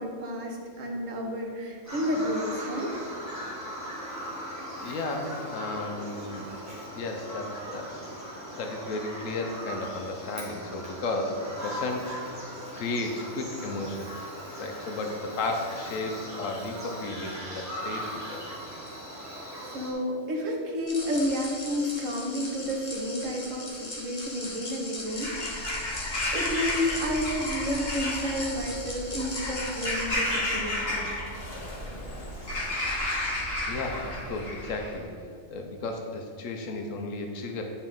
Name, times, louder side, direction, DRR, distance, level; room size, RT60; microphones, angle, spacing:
voice 1, 0.0-2.9 19.6-25.8 26.3-31.1, equal, 85° right, 1 dB, 1.4 m, -31 dB
Bird vocalization bird call bird song, 1.8-19.9, equal, 15° right, 1.4 m, -39 dB
voice 2, 4.2-6.5 6.9-8.2 8.5-12.4 12.7-14.1 14.6-18.4 33.7-35.1 35.5-37.6, left 2 dB, 90° left, 3 dB, 1.1 m, -34 dB
sound 1, 20.9-30.1, left 2 dB, 35° left, 1.1 m, -39 dB
Bird vocalization bird call bird song / Crow, 25.1-35.0, left 1 dB, 50° left, 1.8 m, -32 dB
9.7 x 4.3 x 3.6 m, 2.2 s
omnidirectional pair, 1.3 m